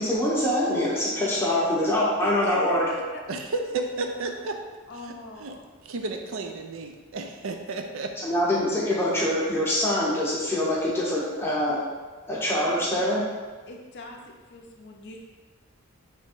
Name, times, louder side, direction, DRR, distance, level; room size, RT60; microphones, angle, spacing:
voice 1, 0.0-2.9 8.2-11.8 12.3-13.2, left 1 dB, 10° left, -7 dB, 0.7 m, -24 dB
voice 2, 2.2-3.2 4.9-5.6 12.6-12.7 13.7-14.2 14.5-15.2, left 2 dB, 55° left, 1 dB, 0.5 m, -39 dB
voice 3, 3.3-4.6 5.0-5.1 5.4-5.6 5.9-8.1, right 3 dB, 65° right, 5 dB, 0.4 m, -32 dB
3.4 x 2.9 x 4.4 m, 1.4 s
head